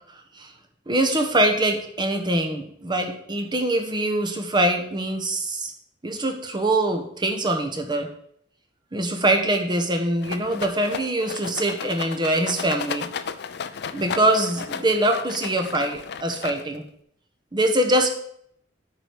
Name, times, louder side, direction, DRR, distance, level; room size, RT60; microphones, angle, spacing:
voice 1, 0.9-5.7 6.0-8.1 8.9-13.1 13.9-16.8 17.5-18.1, right 1 dB, 25° right, 4 dB, 1.1 m, -23 dB
Rattle, 10.2-16.9, left 6 dB, 60° left, 0.5 m, -34 dB
10.0 x 4.7 x 5.1 m, 0.68 s
head